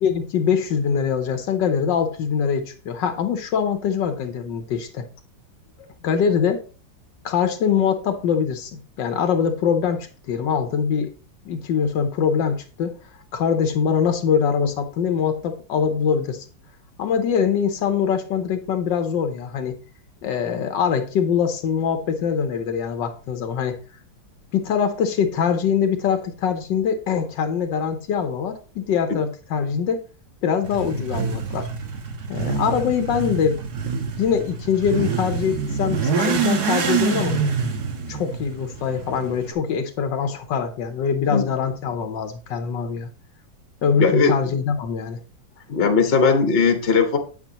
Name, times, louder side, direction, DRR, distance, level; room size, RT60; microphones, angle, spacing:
voice 1, 0.0-5.1 6.0-6.6 7.2-11.1 11.4-13.0 13.3-16.5 17.0-19.8 20.2-23.8 24.5-30.0 30.4-31.7 32.3-33.6 34.2-37.4 38.1-43.1 43.8-45.2, left 7 dB, 75° left, 7 dB, 1.5 m, -23 dB
Motorcycle / Accelerating revving vroom, 30.6-39.5, right 6 dB, 60° right, 1.6 m, -26 dB
voice 2, 44.0-44.5 45.7-47.2, left 4 dB, 35° left, 4 dB, 1.3 m, -18 dB
8.4 x 8.4 x 2.9 m, 0.37 s
omnidirectional pair, 2.0 m